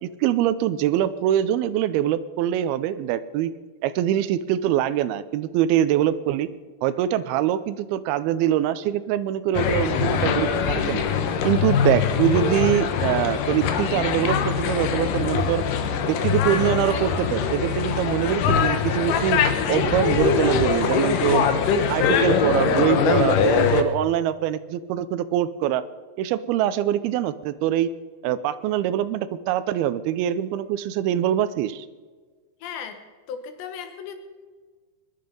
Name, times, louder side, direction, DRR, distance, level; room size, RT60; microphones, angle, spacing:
voice 1, 0.0-3.5 3.8-6.5 6.8-11.0 11.4-15.6 16.1-21.5 21.9-25.8 26.2-27.9 28.2-31.9, right 11 dB, 80° right, 13 dB, 2.4 m, -24 dB
sound 1, 9.5-23.8, left 6 dB, 70° left, 2.3 m, -22 dB
voice 2, 32.6-33.0 33.3-34.2, left 7 dB, 90° left, 6 dB, 3.7 m, -35 dB
22.5 x 11.0 x 5.4 m, 1.4 s
omnidirectional pair, 4.9 m